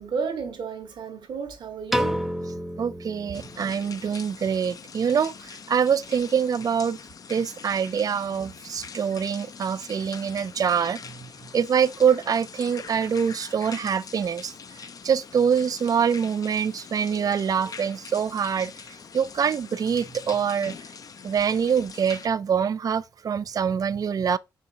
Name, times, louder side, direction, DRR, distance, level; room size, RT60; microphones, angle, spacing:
voice 1, 0.0-2.3, right 5 dB, 65° right, 1.1 m, -32 dB
Piano, 1.9-4.2, equal, ahead, 0.8 m, -30 dB
voice 2, 2.8-5.3 5.7-7.0 7.3-11.0 11.5-14.5 15.0-18.7 19.1-20.7 21.2-24.4, right 7 dB, 50° right, 0.3 m, -24 dB
sound 1, 3.3-22.3, left 6 dB, 45° left, 0.4 m, -43 dB
4.3 x 3.5 x 2.7 m
supercardioid pair, 60°, 8 cm